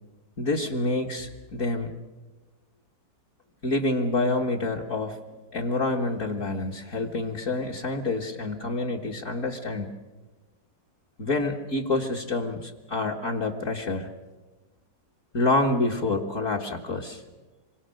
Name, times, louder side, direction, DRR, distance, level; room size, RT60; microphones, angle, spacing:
voice 1, 0.4-1.9 3.6-5.2 5.5-9.9 11.2-14.1 15.3-17.2, left 2 dB, 45° left, -2 dB, 1.8 m, -27 dB
26.5 x 23.5 x 6.5 m, 1.2 s
omnidirectional pair, 1.9 m